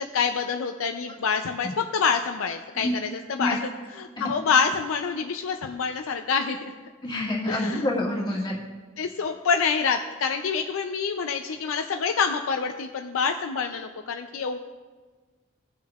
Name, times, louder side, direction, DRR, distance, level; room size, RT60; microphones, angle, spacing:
voice 1, 0.0-6.7 7.5-7.9 9.0-14.6, left 5 dB, 85° left, 6 dB, 0.4 m, -27 dB
voice 2, 7.0-8.5, left 1 dB, 25° left, -5 dB, 1.8 m, -27 dB
17.5 x 6.2 x 2.4 m, 1.4 s
head